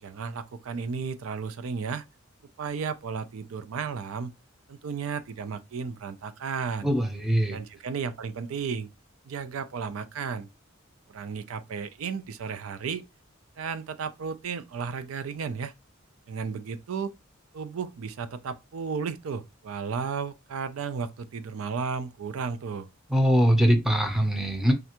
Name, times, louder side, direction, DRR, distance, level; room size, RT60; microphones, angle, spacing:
voice 1, 0.0-2.0 2.6-4.3 4.7-6.9 7.5-8.9 9.3-10.5 11.1-13.0 13.6-15.7 16.3-17.1 17.5-22.9, right 5 dB, 80° right, 0.4 m, -33 dB
voice 2, 6.8-7.6 23.1-24.7, equal, ahead, 0.6 m, -22 dB
3.3 x 2.4 x 2.9 m
head